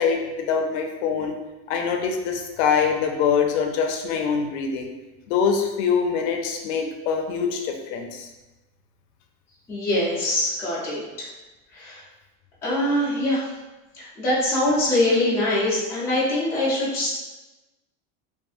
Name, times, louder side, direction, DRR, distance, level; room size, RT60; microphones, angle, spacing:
voice 1, 0.0-1.3 1.7-4.9 5.3-8.3, left 6 dB, 70° left, 3 dB, 0.5 m, -24 dB
voice 2, 9.7-11.3 11.7-12.0 12.6-13.5 13.9-17.1, left 1 dB, 10° left, -10 dB, 0.3 m, -23 dB
2.6 x 2.4 x 2.4 m, 1.1 s
cardioid pair, 180°, 35 cm